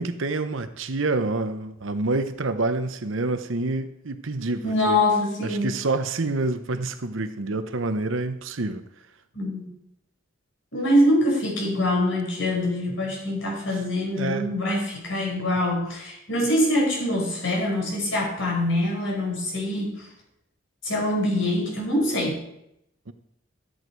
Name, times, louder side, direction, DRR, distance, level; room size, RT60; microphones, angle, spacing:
voice 1, 0.0-5.0 5.4-8.8 14.1-14.5 23.1-23.2, right 3 dB, 75° right, 0.9 m, -27 dB
voice 2, 4.6-5.7 9.3-9.7 10.7-20.1 20.8-22.4, left 1 dB, 70° left, 4.9 m, -24 dB
13.5 x 8.2 x 4.6 m
head